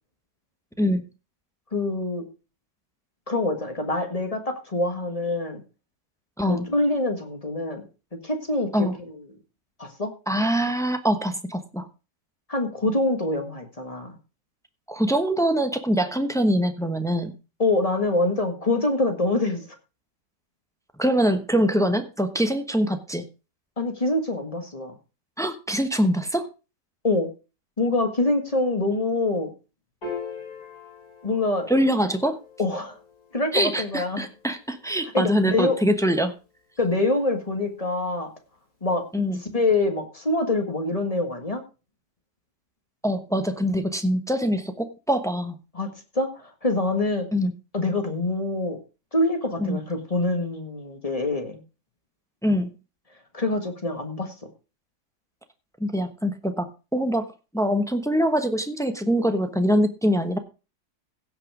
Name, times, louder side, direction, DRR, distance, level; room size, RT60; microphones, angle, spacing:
voice 1, 1.7-2.3 3.3-5.6 6.5-7.8 8.2-9.2 9.8-10.1 12.5-14.2 17.6-19.6 23.8-24.9 27.0-27.3 27.8-29.5 31.2-31.7 32.6-33.0 33.3-34.3 35.1-35.8 36.8-38.3 38.8-39.0 39.5-41.6 45.7-45.9 46.2-47.3 47.7-48.8 49.1-51.6 53.3-54.3, left 2 dB, 20° left, 5 dB, 1.7 m, -25 dB
voice 2, 6.4-6.7 8.7-9.0 10.3-11.9 14.9-17.3 21.0-23.2 25.4-26.5 31.7-32.4 33.5-36.3 39.1-39.4 43.0-45.6 47.3-47.5 49.6-49.8 52.4-52.7 55.8-57.3 57.5-60.4, equal, 5° left, 8 dB, 0.8 m, -23 dB
Piano, 30.0-36.6, left 5 dB, 65° left, 6.6 m, -43 dB
16.5 x 6.0 x 4.8 m, 0.32 s
omnidirectional pair, 1.7 m